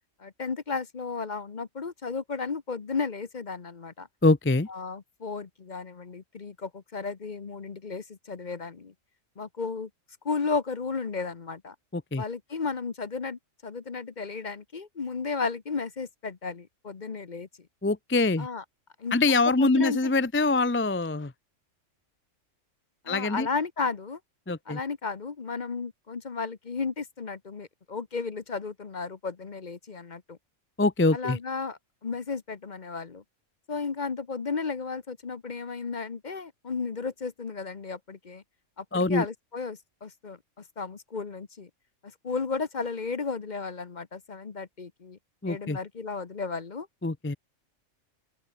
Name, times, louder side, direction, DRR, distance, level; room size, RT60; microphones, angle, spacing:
voice 1, 0.2-4.1 4.7-8.9 9.4-9.9 10.2-11.7 12.2-17.5 18.4-18.6 19.0-20.1 23.0-24.2 24.7-30.4 31.1-33.2 33.7-38.4 38.8-40.4 40.8-41.7 42.2-45.2 45.5-46.9, left 4 dB, 40° left, 1.0 m, -34 dB
voice 2, 4.2-4.7 11.9-12.2 17.8-18.5 19.1-21.3 23.1-23.5 24.5-24.8 30.8-31.4 38.9-39.2 45.4-45.8 47.0-47.4, left 3 dB, 15° left, 0.6 m, -24 dB
open air
omnidirectional pair, 1.3 m